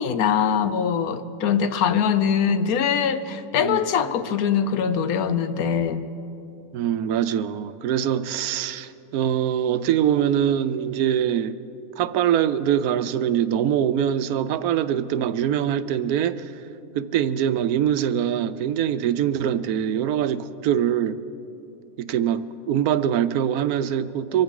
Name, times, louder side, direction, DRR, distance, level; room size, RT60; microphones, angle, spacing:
voice 1, 0.0-6.1, left 7 dB, 80° left, 1.2 m, -22 dB
voice 2, 6.7-11.6 12.0-16.5 16.9-21.2 22.0-24.4, right 9 dB, 80° right, 1.1 m, -23 dB
24.5 x 14.5 x 3.7 m
omnidirectional pair, 1.5 m